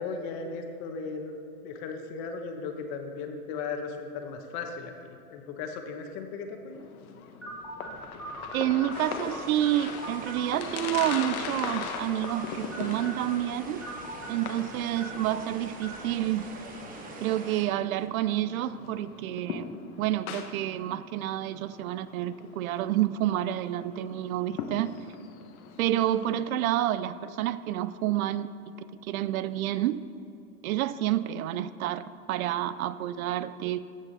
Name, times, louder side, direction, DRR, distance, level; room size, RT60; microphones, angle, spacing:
voice 1, 0.0-1.4 1.6-4.9 5.3-6.8, left 4 dB, 45° left, 5 dB, 1.3 m, -36 dB
sound 1, 6.7-26.6, left 6 dB, 70° left, 1.2 m, -41 dB
sound 2, 7.4-16.9, right 1 dB, ahead, 1.3 m, -43 dB
voice 2, 8.5-13.8 14.3-16.4 17.2-19.7 20.0-24.9 25.8-28.5 29.0-30.0 30.6-33.8, right 13 dB, 65° right, 15 dB, 0.5 m, -29 dB
sound 3, 8.9-17.7, right 3 dB, 20° right, 1.0 m, -44 dB
14.0 x 7.2 x 4.1 m, 2.8 s
supercardioid pair, 140°, 45 cm